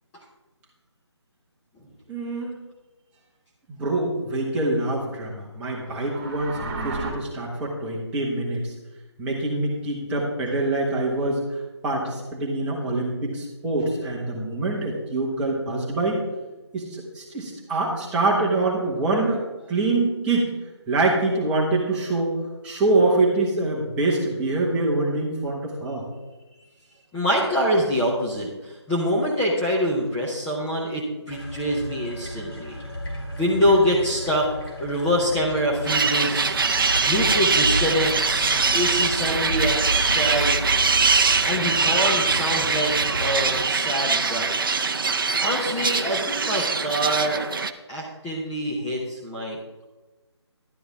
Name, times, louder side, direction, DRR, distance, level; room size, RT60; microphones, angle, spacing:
voice 1, 2.1-2.5 3.7-8.7 9.2-16.2 16.7-19.4 19.7-20.5 20.9-22.4 22.6-26.0, right 2 dB, 5° right, -4 dB, 1.3 m, -25 dB
sound 1, 5.7-7.1, right 3 dB, 30° right, 2.3 m, -33 dB
voice 2, 27.1-32.8 33.4-36.5 37.0-40.6 41.4-42.9 43.2-44.5 45.4-47.5 47.9-49.6, equal, 10° left, -7 dB, 0.9 m, -25 dB
sound 2, 31.3-43.6, equal, 55° left, 2.7 m, -32 dB
sound 3, 35.9-47.7, right 4 dB, 50° right, 0.6 m, -23 dB
11.5 x 10.0 x 3.5 m, 1.2 s
figure-of-eight pair, 155°, 15 cm